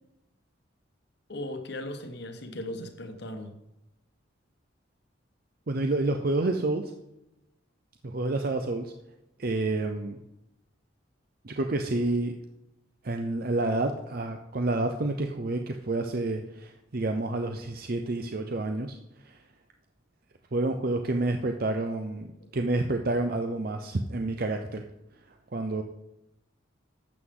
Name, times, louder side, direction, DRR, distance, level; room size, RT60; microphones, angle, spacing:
voice 1, 1.3-3.5, left 1 dB, 55° left, 6 dB, 1.3 m, -37 dB
voice 2, 5.7-6.9 8.0-8.9 9.4-10.2 11.4-12.3 13.0-19.0 20.5-22.3 22.5-24.8 25.5-25.8, right 2 dB, 50° right, 5 dB, 0.6 m, -29 dB
12.0 x 8.0 x 3.8 m, 0.90 s
head